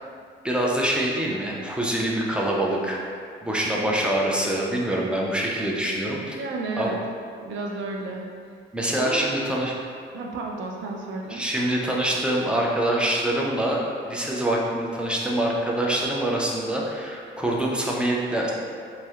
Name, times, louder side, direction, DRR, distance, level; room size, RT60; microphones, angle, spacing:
voice 1, 0.4-3.0 3.4-6.4 6.8-6.9 8.7-9.8 11.3-13.8 14.0-18.5, right 1 dB, 5° right, -3 dB, 0.3 m, -25 dB
voice 2, 6.4-7.0 7.4-8.4 9.0-9.2 10.1-11.4, right 3 dB, 75° right, 0 dB, 0.4 m, -32 dB
2.7 x 2.1 x 2.3 m, 2.2 s
cardioid pair, 90°, 20 cm